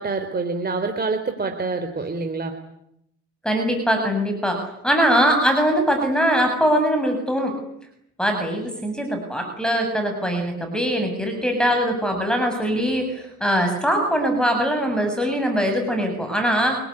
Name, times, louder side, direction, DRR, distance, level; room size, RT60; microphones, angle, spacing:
voice 1, 0.0-2.6, right 3 dB, 30° right, 6 dB, 3.6 m, -26 dB
voice 2, 3.4-4.6 4.8-7.5 8.2-16.8, equal, 5° left, 4 dB, 7.4 m, -22 dB
27.0 x 22.0 x 9.9 m, 0.76 s
cardioid pair, 90°, 30 cm